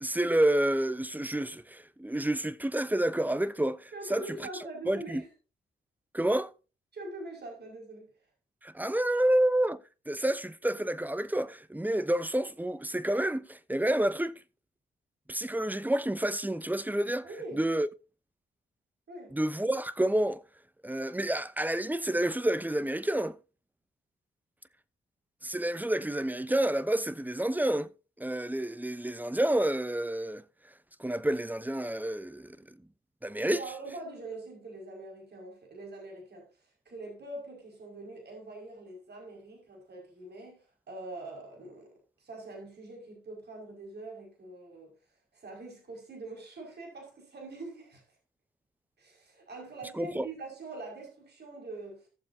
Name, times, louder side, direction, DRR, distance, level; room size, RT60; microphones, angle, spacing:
voice 1, 0.0-4.5 4.9-5.2 6.1-6.5 8.6-14.4 15.3-17.3 17.5-17.9 19.3-20.4 20.8-23.4 25.4-27.9 28.2-30.4 31.0-32.8 33.2-33.6 49.9-50.3, right 1 dB, 10° right, 0.8 m, -29 dB
voice 2, 3.9-5.3 6.9-8.1 17.2-17.6 19.1-19.4 33.4-36.5 36.9-41.9 42.2-44.9 45.3-48.0 49.0-52.1, right 2 dB, 55° right, 5.6 m, -43 dB
17.5 x 7.2 x 2.8 m
cardioid pair, 65°, 21 cm